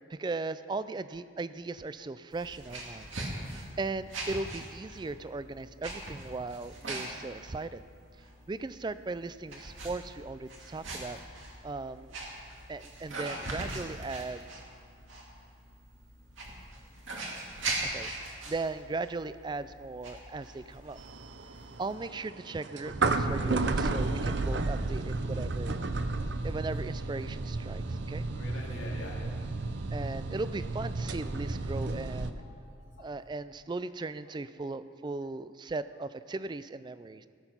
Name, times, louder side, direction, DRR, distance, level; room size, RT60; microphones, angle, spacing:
voice 1, 0.1-7.8 8.5-11.2 11.6-12.2 12.7-14.5 17.8-18.1 18.5-21.0 21.8-25.8 26.4-28.3 29.9-32.4 33.0-37.3, right 3 dB, 20° right, 14 dB, 0.3 m, -37 dB
sound 1, 2.3-22.0, right 2 dB, 80° right, 2.2 m, -41 dB
sound 2, 21.0-32.3, right 3 dB, 60° right, 0.6 m, -32 dB
voice 2, 28.3-29.8 32.4-32.6 33.0-33.1, left 2 dB, 85° left, -2 dB, 2.3 m, -46 dB
17.0 x 7.9 x 5.9 m, 2.2 s
head